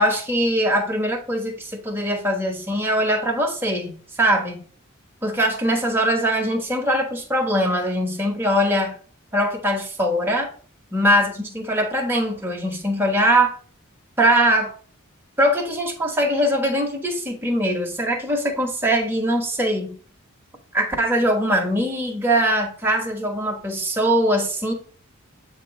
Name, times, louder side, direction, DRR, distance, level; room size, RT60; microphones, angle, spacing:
voice 1, 0.0-4.6 5.2-9.0 9.3-10.5 10.9-13.6 14.2-14.7 15.4-20.0 20.7-24.7, equal, 10° right, 1.3 m, -21 dB
8.2 x 3.0 x 4.8 m
head